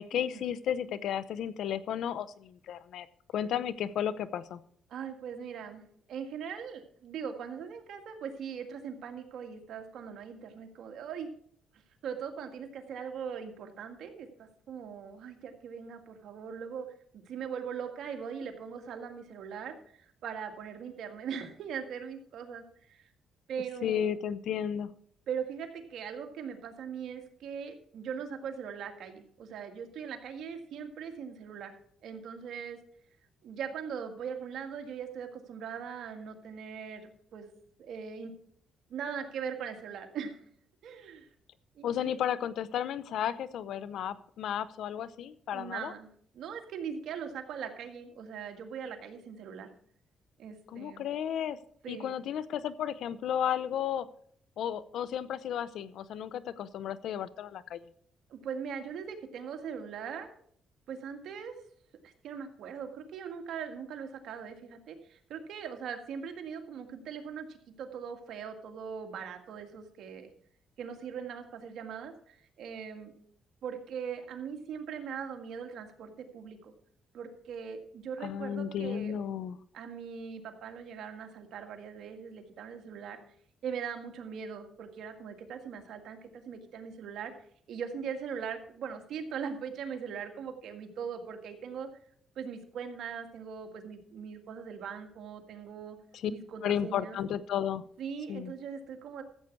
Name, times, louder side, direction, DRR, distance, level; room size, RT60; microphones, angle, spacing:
voice 1, 0.0-3.1 3.3-4.6 23.8-24.9 41.8-45.9 50.7-51.6 51.9-54.1 54.6-57.9 78.2-79.6 96.2-96.3 96.6-97.8 98.3-98.5, left 9 dB, 75° left, 16 dB, 0.7 m, -33 dB
voice 2, 4.9-5.8 6.1-11.3 12.0-16.9 17.1-23.0 23.5-24.1 25.3-31.8 32.0-32.8 33.4-37.5 37.8-38.3 38.9-40.4 40.8-41.3 41.8-42.1 45.5-49.7 50.4-51.1 51.8-52.2 58.3-60.3 60.9-61.5 62.0-70.3 70.8-73.1 73.6-76.7 77.1-79.1 79.7-83.2 83.6-87.3 87.7-91.9 92.4-96.0 96.3-97.2 98.0-99.2, right 7 dB, 75° right, 5 dB, 1.8 m, -40 dB
14.0 x 8.2 x 4.6 m, 0.62 s
cardioid pair, 90°, 0 cm